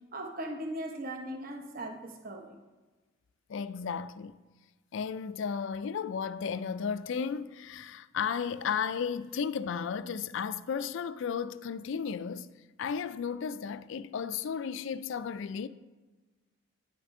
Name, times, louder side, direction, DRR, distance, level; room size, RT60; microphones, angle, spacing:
voice 1, 0.1-2.6, right 1 dB, 40° right, 0.8 m, -39 dB
voice 2, 3.5-4.4 4.9-12.5 12.8-15.7, left 6 dB, 55° left, 0.3 m, -34 dB
9.8 x 8.3 x 3.7 m
head